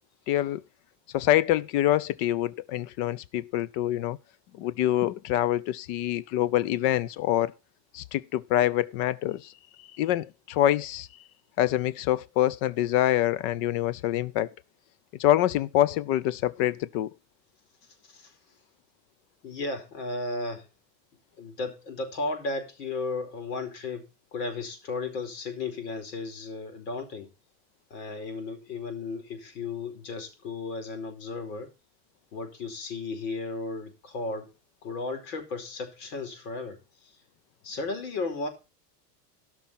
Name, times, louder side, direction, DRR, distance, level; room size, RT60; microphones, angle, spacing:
voice 1, 0.3-0.6 1.1-4.2 4.6-7.5 7.9-9.5 10.0-11.1 11.6-14.5 15.2-17.1, left 13 dB, 45° left, 0.7 m, -25 dB
voice 2, 17.8-18.4 19.4-20.7 21.4-27.3 27.9-31.7 32.3-34.5 34.8-37.2 37.6-38.5, left 3 dB, 75° left, 4.7 m, -35 dB
17.5 x 6.2 x 4.3 m
supercardioid pair, 150°, 49 cm